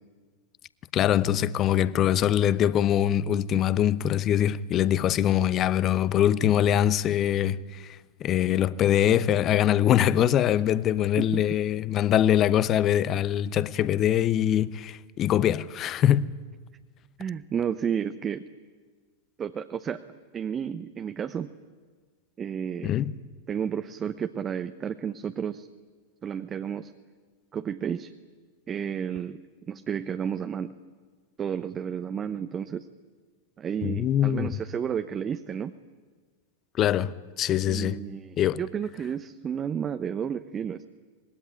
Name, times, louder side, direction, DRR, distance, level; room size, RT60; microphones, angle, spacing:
voice 1, 0.9-16.3 22.8-23.1 33.8-34.6 36.8-38.0 38.4-38.6, left 11 dB, 30° left, 0.9 m, -23 dB
voice 2, 17.2-18.4 19.4-20.0 20.3-21.5 22.4-23.0 23.5-25.7 26.2-26.9 27.5-28.1 28.7-29.4 29.7-30.7 31.4-32.9 33.6-35.7 37.7-40.8, right 8 dB, 25° right, 0.9 m, -32 dB
25.0 x 21.5 x 10.0 m
figure-of-eight pair, 90°, 0 cm